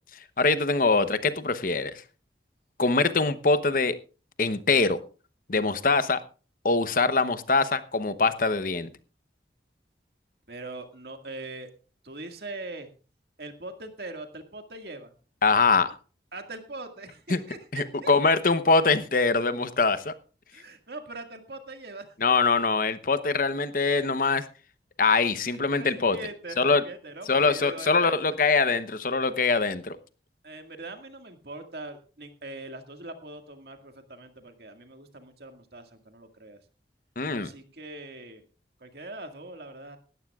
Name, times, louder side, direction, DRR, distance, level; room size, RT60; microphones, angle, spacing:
voice 1, 0.4-2.0 2.8-4.0 4.4-5.0 5.5-6.2 6.6-8.9 15.4-15.9 17.3-17.4 17.7-20.1 22.2-24.4 25.0-26.2 26.6-26.8 27.3-30.0 37.2-37.5, left 4 dB, 50° left, 0.9 m, -23 dB
voice 2, 10.5-11.7 12.0-12.9 13.4-15.1 16.3-18.1 20.5-22.2 25.4-28.4 30.4-36.6 37.3-38.4 38.8-40.0, right 2 dB, 60° right, 1.9 m, -41 dB
18.5 x 14.0 x 2.4 m
head